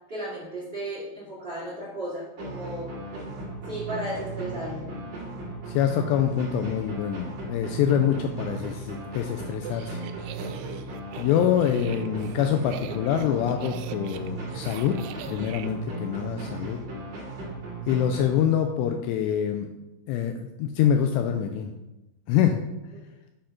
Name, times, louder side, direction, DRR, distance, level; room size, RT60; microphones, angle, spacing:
voice 1, 0.1-3.1 3.6-4.9 22.9-23.0, right 1 dB, 30° right, -8 dB, 2.2 m, -35 dB
sound 1, 2.4-18.9, right 3 dB, 50° right, 3.7 m, -36 dB
voice 2, 5.7-10.0 11.2-15.0 15.3-16.8 17.9-19.7 20.1-21.7 22.3-22.6, left 9 dB, 85° left, 6 dB, 2.5 m, -25 dB
sound 2, 9.5-15.7, right 11 dB, 85° right, 2.9 m, -42 dB
8.9 x 3.8 x 5.6 m, 0.93 s
omnidirectional pair, 5.4 m